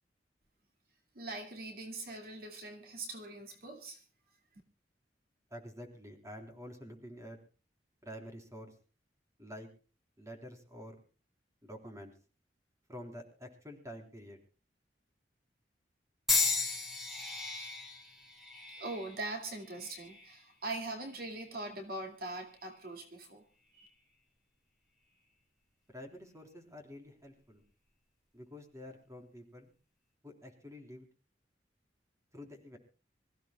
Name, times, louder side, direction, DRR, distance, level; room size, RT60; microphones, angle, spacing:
voice 1, 1.2-4.0 18.8-23.4 23.7-23.9, right 2 dB, 55° right, 4 dB, 2.4 m, -42 dB
voice 2, 5.5-7.4 8.0-8.7 9.4-9.7 10.2-11.0 11.6-12.1 12.9-14.4 25.9-27.6 28.3-29.7 30.2-31.1 32.3-32.8, equal, 20° right, 4 dB, 3.7 m, -48 dB
sound 1, 16.3-20.4 21.1-21.5 22.5-22.7, left 4 dB, ahead, 5.3 m, -35 dB
26.0 x 15.5 x 2.3 m, 0.36 s
head